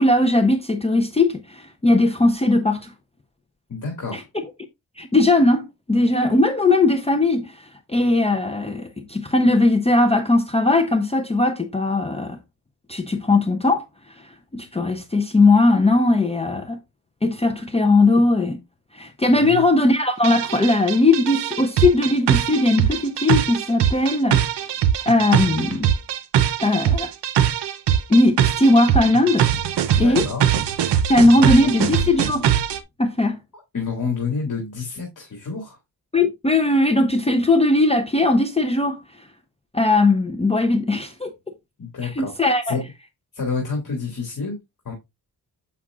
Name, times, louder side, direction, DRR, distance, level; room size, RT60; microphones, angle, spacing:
voice 1, 0.0-2.9 4.1-4.2 5.0-7.6 7.9-12.4 12.9-13.8 14.5-16.8 17.2-18.6 18.9-24.4 25.1-25.9 26.6-27.1 28.1-29.5 30.0-30.3 31.1-32.5 33.0-33.4 36.1-39.0 39.7-41.3 42.0-42.8, left 2 dB, 15° left, 0.6 m, -18 dB
voice 2, 3.7-4.2 19.3-19.6 30.0-30.4 31.4-31.7 33.7-35.8 41.8-42.3 42.6-42.8 43.3-44.6 44.8-44.9, left 4 dB, 50° left, 2.4 m, -28 dB
sound 1, 20.2-32.8, right 10 dB, 90° right, 0.7 m, -21 dB
7.4 x 5.8 x 2.4 m
wide cardioid pair, 115°, 40 cm